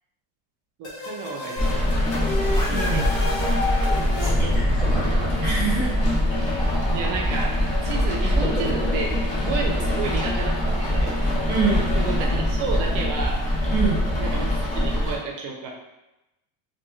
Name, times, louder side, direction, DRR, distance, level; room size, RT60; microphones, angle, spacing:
sound 1, 0.8-6.5, left 2 dB, 50° left, 0.9 m, -30 dB
voice 1, 0.8-2.1 2.6-3.2 6.9-9.1 9.4-11.2 11.9-13.5 14.2-15.7, right 5 dB, 45° right, 1 dB, 0.5 m, -31 dB
Rain, 1.6-15.2, left 1 dB, 20° left, 0.3 m, -23 dB
sound 2, 2.7-13.1, right 1 dB, 5° right, 1.2 m, -37 dB
voice 2, 2.7-3.1 4.2-6.0 11.5-11.9 13.7-14.0, right 4 dB, 20° right, -7 dB, 1.3 m, -26 dB
2.4 x 2.3 x 3.0 m, 0.96 s
cardioid pair, 155°, 43 cm